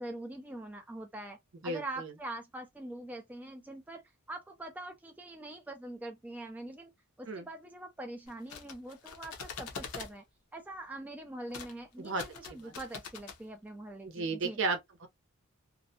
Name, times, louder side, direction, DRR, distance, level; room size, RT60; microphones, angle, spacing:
voice 1, 0.0-1.4 1.6-6.9 7.2-10.2 10.5-14.6, right 1 dB, 5° right, 0.3 m, -43 dB
voice 2, 1.6-2.1 7.3-7.4 12.0-12.2 12.6-12.7 14.0-15.1, right 3 dB, 60° right, 0.7 m, -34 dB
sound 1, 8.3-10.1 11.5-11.7 12.0-13.4, left 6 dB, 85° left, 0.7 m, -44 dB
2.6 x 2.1 x 2.6 m
head